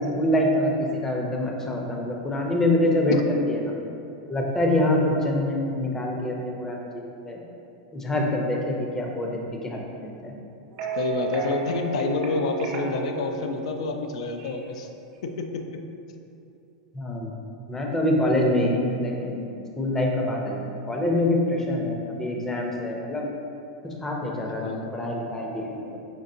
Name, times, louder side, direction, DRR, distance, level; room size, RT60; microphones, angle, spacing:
voice 1, 0.1-3.2 3.5-3.7 4.3-7.4 7.9-10.3 16.9-17.3 17.7-19.4 19.8-23.3 23.8-25.8, left 1 dB, 10° left, 0 dB, 0.5 m, -25 dB
sound 1, 10.7-14.8, right 6 dB, 50° right, 0.8 m, -34 dB
voice 2, 11.0-14.9 15.2-15.8 24.6-24.9, left 3 dB, 75° left, 5 dB, 0.4 m, -28 dB
5.1 x 3.4 x 2.7 m, 2.7 s
supercardioid pair, 135°, 3 cm